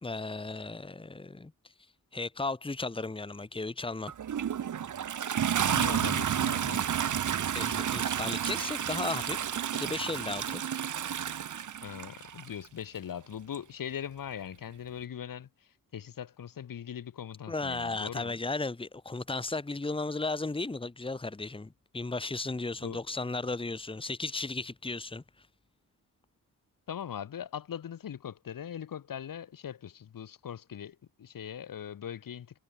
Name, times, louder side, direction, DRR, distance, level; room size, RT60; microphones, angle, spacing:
voice 1, 0.0-1.5 2.1-4.1 7.5-10.6 17.5-25.2, left 3 dB, 15° left, 2.2 m, -35 dB
Toilet flush, 4.1-12.5 13.5-13.6, right 9 dB, 60° right, 1.5 m, -31 dB
voice 2, 5.7-6.9 11.8-15.5 15.9-18.4 22.8-23.0 26.9-32.6, left 9 dB, 75° left, 4.5 m, -40 dB
wide cardioid pair, 135°, 34 cm